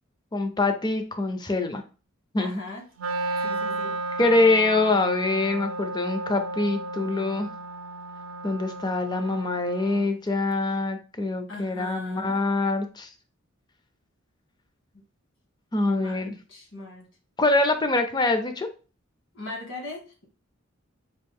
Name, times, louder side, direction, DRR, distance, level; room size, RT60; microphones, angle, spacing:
voice 1, 0.3-1.8 2.3-2.6 4.2-7.5 8.4-13.1 15.7-16.3 17.4-18.7, left 2 dB, 20° left, 7 dB, 0.5 m, -24 dB
voice 2, 2.4-2.8 3.4-4.0 11.5-12.4 15.9-17.1 19.3-20.3, left 2 dB, 70° left, -1 dB, 1.6 m, -39 dB
Wind instrument woodwind instrument, 3.0-10.1, right 2 dB, 70° right, 0.5 m, -33 dB
4.3 x 2.5 x 3.5 m, 0.35 s
head